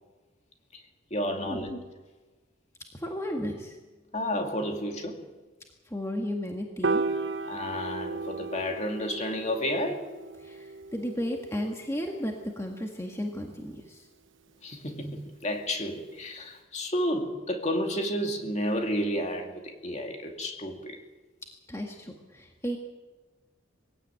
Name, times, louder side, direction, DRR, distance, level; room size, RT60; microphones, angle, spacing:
voice 1, 1.1-1.8 4.1-5.2 7.5-10.0 14.6-21.0, equal, 35° left, 3 dB, 2.4 m, -31 dB
voice 2, 2.9-3.8 5.9-7.0 10.4-14.1 21.7-22.8, equal, 15° left, 1 dB, 1.9 m, -34 dB
Piano, 6.8-13.1, right 3 dB, 75° right, 1.1 m, -35 dB
22.0 x 16.5 x 8.9 m, 1.3 s
head